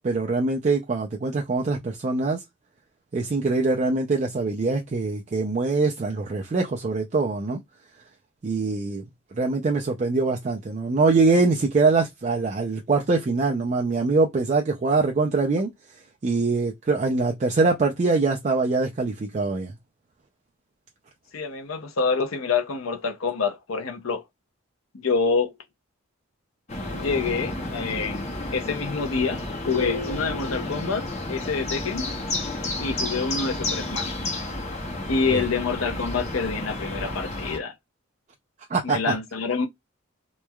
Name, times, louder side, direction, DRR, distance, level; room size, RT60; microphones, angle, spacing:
voice 1, 0.0-2.4 3.1-7.6 8.4-9.1 9.3-19.8 35.3-35.4 38.7-39.0, right 3 dB, 35° right, 0.4 m, -23 dB
voice 2, 21.3-24.2 24.9-25.5 26.9-29.4 29.6-32.1 32.8-34.2 35.1-37.7 38.8-39.7, left 4 dB, 75° left, 0.6 m, -27 dB
sound 1, 26.7-37.6, left 2 dB, 30° left, 0.7 m, -31 dB
3.0 x 2.2 x 2.2 m
head